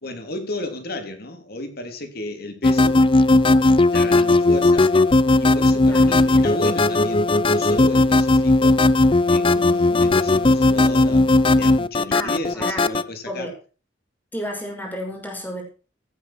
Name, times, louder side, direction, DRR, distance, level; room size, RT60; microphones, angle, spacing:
voice 1, 0.0-3.0 3.8-4.9 5.4-8.8 9.3-13.5, left 1 dB, 55° left, 6 dB, 3.2 m, -33 dB
sound 1, 2.6-13.0, left 2 dB, 25° left, 0.5 m, -17 dB
voice 2, 5.9-6.5 12.1-12.8 13.3-13.5 14.3-15.6, equal, 10° left, 1 dB, 5.5 m, -32 dB
16.0 x 9.2 x 4.5 m, 0.36 s
head